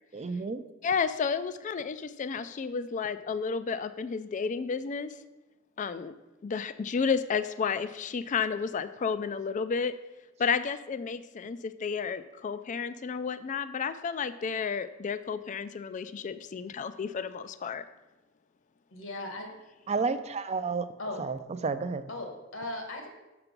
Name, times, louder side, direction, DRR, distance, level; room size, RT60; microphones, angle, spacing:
voice 1, 0.1-0.6 19.9-20.9 21.2-22.0, right 4 dB, 30° right, 11 dB, 0.4 m, -31 dB
voice 2, 0.8-5.1 5.8-6.1 6.4-9.9 10.4-17.8, left 5 dB, 35° left, 13 dB, 0.3 m, -32 dB
voice 3, 18.9-19.5 21.0-21.2 22.1-23.1, left 2 dB, 65° left, 4 dB, 1.4 m, -37 dB
6.9 x 5.9 x 5.2 m, 1.1 s
head